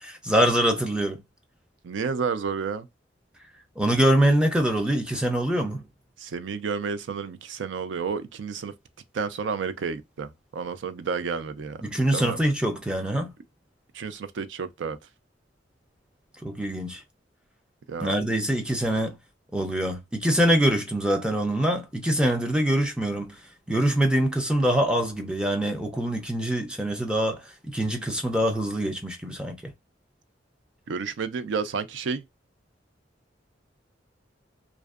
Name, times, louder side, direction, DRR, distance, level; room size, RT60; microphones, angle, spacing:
voice 1, 0.0-1.2 3.8-5.9 11.8-13.3 16.4-17.0 18.0-19.2 19.5-23.4 23.7-29.7, right 1 dB, 5° right, 0.5 m, -24 dB
voice 2, 1.8-2.9 6.2-8.7 9.1-11.8 12.1-12.4 13.9-15.0 17.9-18.1 30.9-32.2, right 5 dB, 75° right, 0.4 m, -31 dB
2.5 x 2.1 x 2.3 m
head